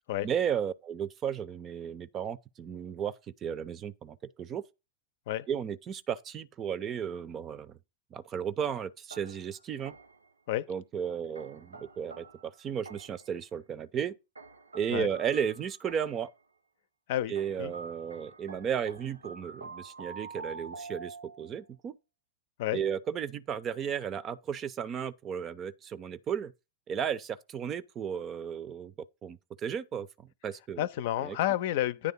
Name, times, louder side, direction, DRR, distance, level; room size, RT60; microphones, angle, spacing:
voice 1, 0.2-3.1 3.4-4.6 5.5-7.8 8.1-9.9 10.7-14.1 14.7-16.3 17.3-22.0 22.7-26.5 26.9-28.9 29.2-30.9 31.2-31.4, right 8 dB, 30° right, 0.7 m, -34 dB
sound 1, 9.1-10.3 11.4-13.3 14.4-16.3 17.4-21.6, right 4 dB, 75° right, 0.9 m, -47 dB
voice 2, 17.1-17.7 22.6-22.8 30.8-32.1, left 13 dB, 50° left, 0.7 m, -30 dB
9.8 x 3.4 x 7.0 m
figure-of-eight pair, 90°, 0 cm